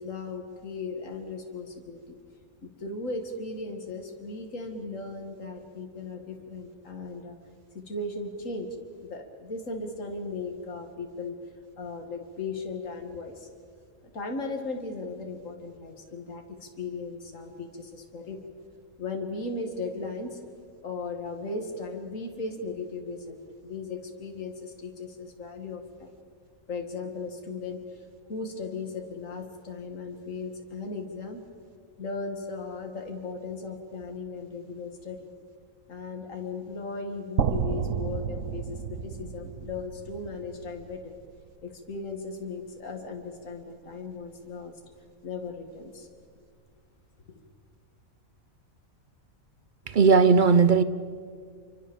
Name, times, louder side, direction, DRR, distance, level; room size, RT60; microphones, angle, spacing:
voice 1, 0.0-2.2 2.6-7.4 7.7-8.7 9.0-11.4 11.8-13.5 14.1-18.5 19.0-20.4 20.8-26.1 26.7-31.4 32.0-35.3 35.9-41.1 41.6-44.7 45.2-46.1, left 3 dB, 65° left, 2.6 m, -37 dB
sound 1, 37.4-41.4, right 7 dB, 65° right, 1.2 m, -31 dB
voice 2, 49.9-50.8, right 5 dB, 40° right, 0.8 m, -17 dB
27.5 x 24.5 x 7.2 m
omnidirectional pair, 1.5 m